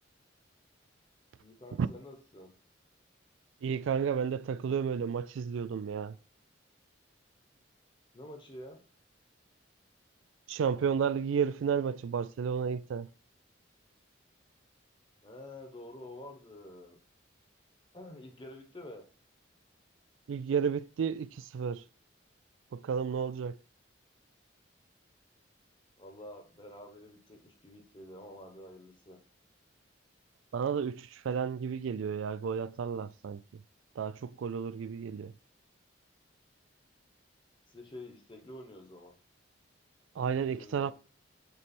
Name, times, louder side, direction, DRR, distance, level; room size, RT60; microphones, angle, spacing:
voice 1, 1.4-2.5 8.1-8.8 15.2-17.0 17.9-19.0 26.0-29.2 37.7-39.1 40.3-40.9, left 1 dB, 25° left, 1.0 m, -48 dB
voice 2, 3.6-6.2 10.5-13.1 20.3-21.8 22.7-23.6 30.5-33.6 34.0-35.3 40.2-40.9, right 7 dB, 80° right, 0.3 m, -32 dB
6.9 x 3.3 x 4.3 m
head